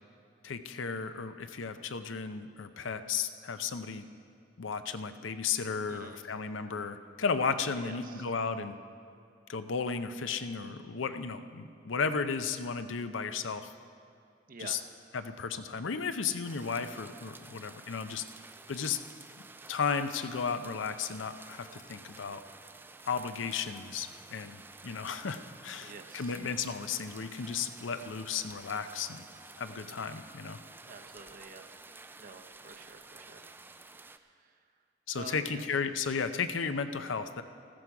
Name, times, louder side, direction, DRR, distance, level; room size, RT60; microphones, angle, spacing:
voice 1, 0.4-4.1 4.6-8.8 9.5-13.7 14.6-14.8 15.1-18.2 18.7-19.0 19.7-22.4 23.1-29.2 29.6-30.6 35.1-37.4, left 5 dB, 85° left, 10 dB, 0.6 m, -34 dB
voice 2, 5.9-6.3 7.8-8.3 14.5-14.9 25.8-26.4 30.8-31.7 32.2-33.5 34.1-34.6 35.1-35.7, right 3 dB, 45° right, 6 dB, 0.8 m, -49 dB
sound 1, 16.4-34.2, right 3 dB, 10° right, 0.3 m, -51 dB
14.0 x 13.5 x 4.8 m, 2.3 s
head